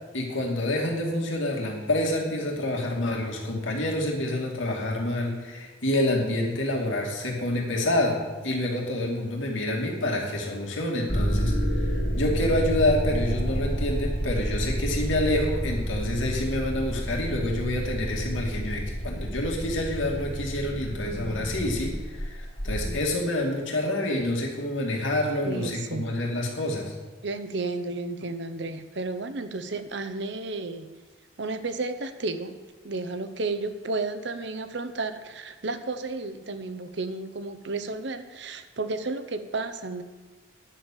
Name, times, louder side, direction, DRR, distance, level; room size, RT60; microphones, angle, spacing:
voice 1, 0.1-8.2 8.4-26.9, left 1 dB, 80° left, -1 dB, 2.4 m, -28 dB
sound 1, 11.1-23.0, equal, 60° left, 2.5 m, -29 dB
voice 2, 22.6-23.1 25.4-26.2 27.2-30.9 31.4-32.6 32.8-40.0, right 3 dB, 65° right, 10 dB, 0.9 m, -32 dB
10.0 x 7.2 x 7.3 m, 1.4 s
head